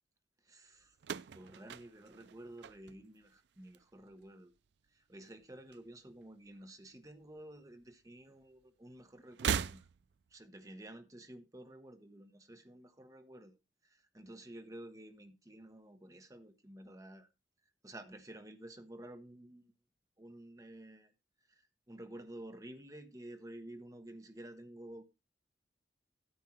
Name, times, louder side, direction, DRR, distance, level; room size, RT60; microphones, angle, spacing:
voice 1, 0.4-1.0 1.3-4.5 4.9-9.9 10.3-13.6 13.8-17.3 17.8-19.7 20.2-21.1 21.5-21.6 21.9-25.0, right 1 dB, 20° right, 1.1 m, -51 dB
sound 1, 1.0-3.3 3.6-4.2 5.3-6.3 6.6-6.7 7.8-7.9 9.3-10.3, right 7 dB, 75° right, 0.4 m, -39 dB
9.6 x 7.5 x 4.4 m
head